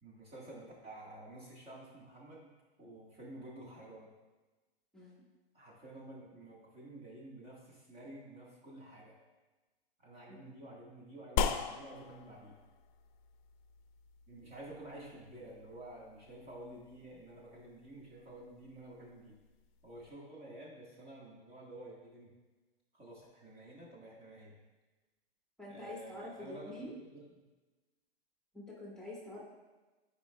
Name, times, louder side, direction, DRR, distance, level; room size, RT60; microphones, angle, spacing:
voice 1, 0.0-2.5 2.8-4.1 5.5-9.1 10.0-12.6 14.3-19.4 19.8-22.3 22.9-24.5 25.7-27.4, right 1 dB, 20° right, -4 dB, 1.5 m, -51 dB
sound 1, 11.4-20.1, left 7 dB, 50° left, 0.6 m, -41 dB
voice 2, 25.6-26.9 28.5-29.4, left 1 dB, ahead, -5 dB, 1.5 m, -46 dB
12.0 x 4.9 x 2.2 m, 1.2 s
hypercardioid pair, 125°, 30 cm